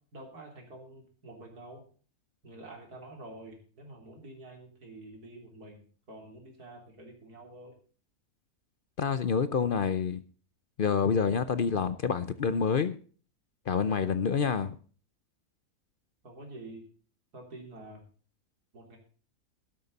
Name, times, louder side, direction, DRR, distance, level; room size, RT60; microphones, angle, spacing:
voice 1, 0.1-1.8 2.4-7.8 16.2-16.9 17.3-18.0 18.7-19.0, right 2 dB, 85° right, 3.9 m, -48 dB
voice 2, 9.0-10.2 10.8-13.0 13.7-14.8, left 6 dB, 55° left, 0.6 m, -27 dB
12.5 x 12.5 x 4.1 m
omnidirectional pair, 1.6 m